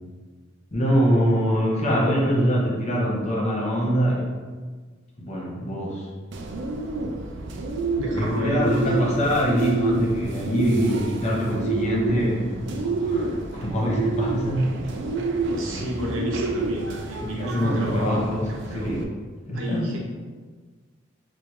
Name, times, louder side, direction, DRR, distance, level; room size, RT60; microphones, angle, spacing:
voice 1, 0.7-4.3 5.2-6.1 8.1-14.7 15.7-15.9 17.1-18.5 18.7-19.0 19.5-19.9, equal, 35° left, -3 dB, 0.7 m, -24 dB
Bird, 6.3-19.0, right 3 dB, 60° right, 0.4 m, -28 dB
voice 2, 8.0-8.9 15.5-18.9 19.5-20.0, left 1 dB, 80° right, -2 dB, 0.8 m, -30 dB
4.6 x 2.0 x 3.0 m, 1.4 s
head